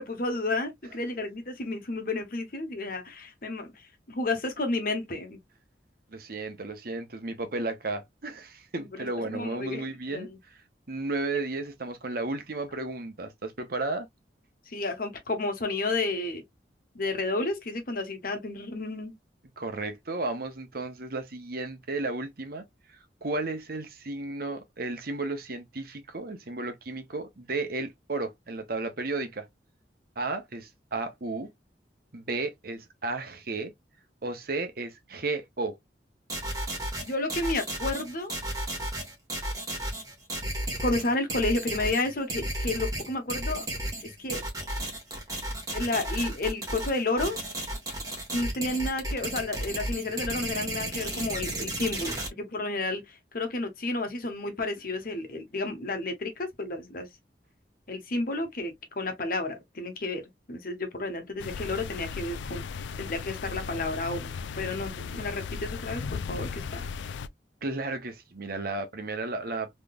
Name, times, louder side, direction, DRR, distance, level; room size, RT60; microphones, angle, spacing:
voice 1, 0.0-5.4 8.8-10.4 14.7-16.4 16.9-19.1 37.0-38.3 40.8-43.7 44.0-44.4 45.7-47.4 48.3-57.1 57.9-66.8, left 2 dB, 55° left, 1.2 m, -31 dB
voice 2, 6.1-10.3 10.9-14.1 19.6-22.6 23.2-29.5 30.2-31.5 32.1-33.7 34.2-35.8 67.6-69.7, right 3 dB, 55° right, 0.9 m, -33 dB
sound 1, 36.3-52.3, right 1 dB, 20° right, 1.5 m, -33 dB
sound 2, 61.4-67.3, left 5 dB, 85° left, 0.3 m, -36 dB
3.7 x 3.2 x 2.3 m
head